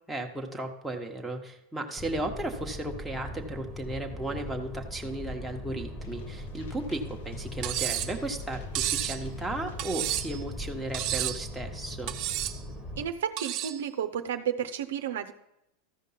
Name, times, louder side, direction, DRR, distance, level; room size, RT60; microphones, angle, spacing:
voice 1, 0.1-12.1, right 2 dB, 5° right, 1 dB, 1.2 m, -35 dB
sound 1, 2.0-13.1, left 1 dB, 20° left, 1.6 m, -40 dB
sound 2, 6.0-11.5, left 4 dB, 80° left, 0.7 m, -48 dB
Cutlery silverware, 7.6-8.2 8.8-9.2 9.8-10.4 10.9-11.4 12.1-12.6 13.4-13.8, right 13 dB, 50° right, 0.8 m, -31 dB
voice 2, 13.0-15.3, right 9 dB, 85° right, 7 dB, 0.7 m, -32 dB
13.5 x 5.2 x 5.7 m, 0.84 s
supercardioid pair, 120°, 0 cm